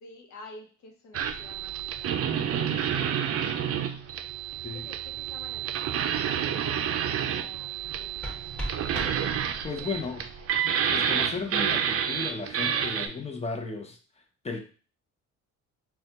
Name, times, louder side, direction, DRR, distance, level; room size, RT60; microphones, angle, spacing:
voice 1, 0.0-2.1 2.5-4.0 4.7-6.2 6.6-8.4 8.9-10.5, left 3 dB, 70° left, 2 dB, 0.8 m, -51 dB
sound 1, 1.1-13.1, right 8 dB, 50° right, 0.4 m, -29 dB
sound 2, 7.8-9.8, right 1 dB, 5° left, 0.9 m, -39 dB
voice 2, 9.6-10.2 10.6-14.0 14.4-14.6, left 4 dB, 20° left, 5 dB, 0.5 m, -34 dB
3.2 x 2.3 x 2.8 m, 0.38 s
cardioid pair, 90°, 30 cm